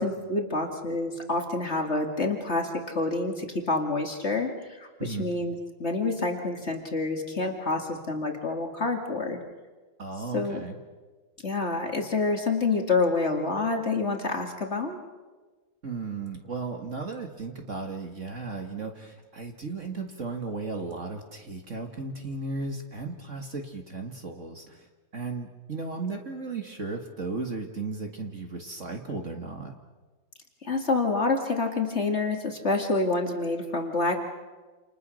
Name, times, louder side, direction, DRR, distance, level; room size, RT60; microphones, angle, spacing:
voice 1, 0.0-9.4 10.3-10.6 11.4-15.0 30.6-34.2, left 3 dB, 35° left, 3 dB, 2.5 m, -28 dB
voice 2, 10.0-10.8 15.8-24.9 25.1-29.7, right 3 dB, 40° right, 3 dB, 2.1 m, -35 dB
29.0 x 28.5 x 6.4 m, 1.3 s
omnidirectional pair, 2.2 m